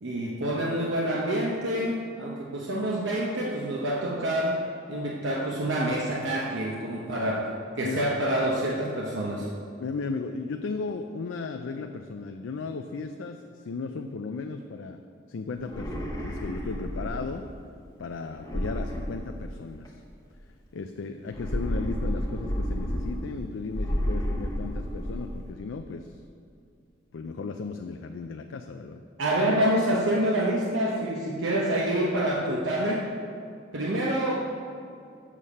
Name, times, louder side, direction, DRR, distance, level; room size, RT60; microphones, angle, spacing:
voice 1, 0.0-7.5 7.8-9.5 29.2-33.1 33.7-34.3, right 1 dB, 80° right, -2 dB, 0.9 m, -27 dB
voice 2, 9.8-15.0 15.3-17.4 18.0-20.0 20.7-26.2 27.1-29.0, left 4 dB, 85° left, 6 dB, 0.4 m, -35 dB
sound 1, 15.6-17.5 18.4-19.9 21.3-23.4 23.7-25.4, equal, 20° left, 0.9 m, -31 dB
7.5 x 6.4 x 5.5 m, 2.5 s
head